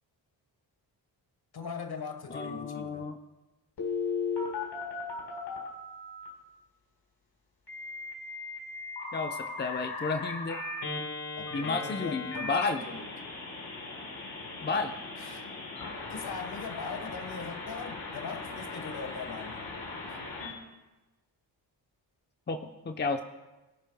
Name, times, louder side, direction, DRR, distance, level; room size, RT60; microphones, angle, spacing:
voice 1, 1.5-3.1 11.4-13.1 15.2-15.5 16.1-19.7 20.1-20.2, left 5 dB, 55° left, 1.4 m, -40 dB
voice 2, 2.3-3.1 9.1-10.6 11.5-12.8 14.6-14.9 22.5-22.6 22.8-23.2, left 4 dB, 25° left, 0.7 m, -31 dB
Telephone, 3.8-6.3 7.7-20.5, left 3 dB, 70° left, 4.3 m, -38 dB
24.0 x 10.0 x 2.3 m
cardioid pair, 90°, 45 cm